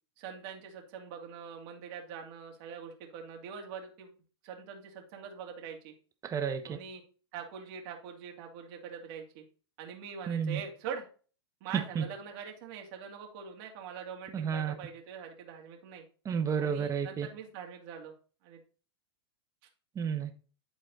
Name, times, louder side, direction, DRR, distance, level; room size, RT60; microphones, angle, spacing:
voice 1, 0.2-4.1 4.4-5.9 6.7-7.0 7.3-9.4 9.8-11.1 11.6-16.0 16.6-18.1 18.4-18.6, right 7 dB, 50° right, 2.6 m, -43 dB
voice 2, 6.2-6.6 10.3-10.6 11.9-12.0 14.3-14.7 16.2-17.3 20.0-20.4, right 7 dB, 25° right, 1.2 m, -31 dB
11.0 x 4.0 x 4.1 m
hypercardioid pair, 115°, 14 cm